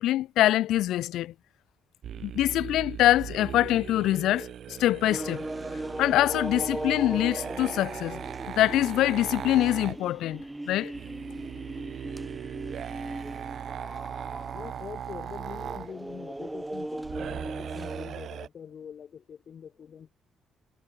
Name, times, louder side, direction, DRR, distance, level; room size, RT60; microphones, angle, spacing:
voice 1, 0.0-1.3 2.2-5.5 6.0-8.2 8.6-10.9, left 14 dB, 85° left, 0.8 m, -24 dB
sound 1, 2.0-10.0 10.9-15.9 17.0-18.5, right 9 dB, 65° right, 4.7 m, -39 dB
sound 2, 5.1-18.1, right 1 dB, 10° right, 3.9 m, -38 dB
voice 2, 14.5-20.1, left 7 dB, 55° left, 4.4 m, -44 dB
cardioid pair, 90°, 0 cm